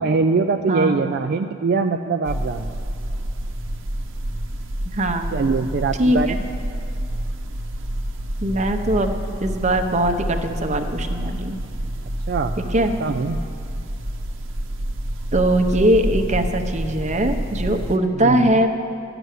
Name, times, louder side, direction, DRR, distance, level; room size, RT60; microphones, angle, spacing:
voice 1, 0.0-2.8 5.3-6.4 12.3-13.4 18.1-18.5, right 4 dB, 55° right, 6 dB, 0.4 m, -23 dB
voice 2, 0.7-1.1 4.9-5.4 6.0-6.2 8.4-11.6 12.6-12.9 15.3-18.8, right 1 dB, 35° right, 6 dB, 0.8 m, -21 dB
sound 1, 2.3-18.0, right 1 dB, 75° right, 0.9 m, -28 dB
12.5 x 6.9 x 9.2 m, 2.6 s
head